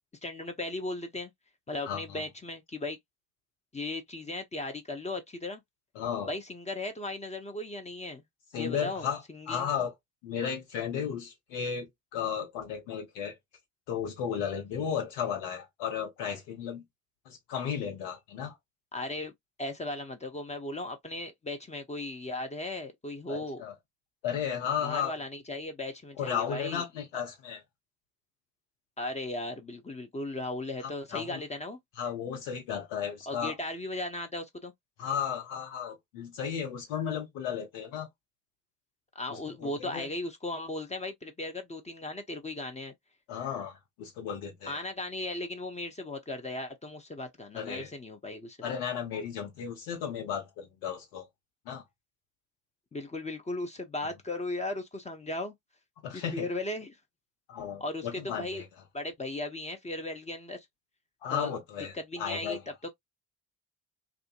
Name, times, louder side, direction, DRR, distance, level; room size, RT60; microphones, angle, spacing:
voice 1, 0.2-1.3 1.7-3.0 3.7-5.6 6.3-8.2 8.5-9.7 18.9-19.3 19.6-23.6 24.8-26.8 29.0-31.8 33.3-34.7 39.1-42.9 44.7-48.8 52.9-55.5 56.1-57.0 57.8-58.6 58.9-60.7 61.3-61.5 61.9-62.9, left 2 dB, 15° left, 0.6 m, -37 dB
voice 2, 1.9-2.2 5.9-6.3 8.5-9.2 9.5-9.9 10.2-11.9 12.1-13.4 13.9-16.8 17.3-18.6 23.3-23.7 24.2-25.1 26.2-27.6 30.8-31.4 32.0-33.5 35.0-38.1 39.3-40.1 43.3-44.8 47.5-47.9 48.6-51.3 51.6-51.8 56.0-56.5 57.5-58.7 61.2-62.6, left 8 dB, 65° left, 1.1 m, -34 dB
2.4 x 2.3 x 2.4 m
figure-of-eight pair, 50°, 44 cm